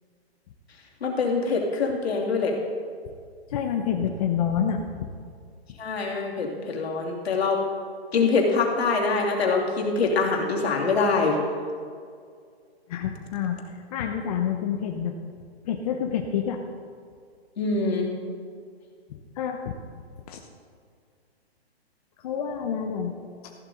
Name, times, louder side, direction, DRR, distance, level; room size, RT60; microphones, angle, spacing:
voice 1, 1.0-2.5 5.8-7.6 8.1-11.4 17.6-18.1, left 4 dB, 70° left, -1 dB, 2.9 m, -24 dB
voice 2, 3.5-5.1 12.9-15.2 15.6-16.6 19.1-19.7 20.3-20.4 22.2-23.1 23.4-23.5, left 8 dB, 35° left, 3 dB, 0.8 m, -28 dB
14.5 x 11.5 x 3.9 m, 2.2 s
hypercardioid pair, 145°, 32 cm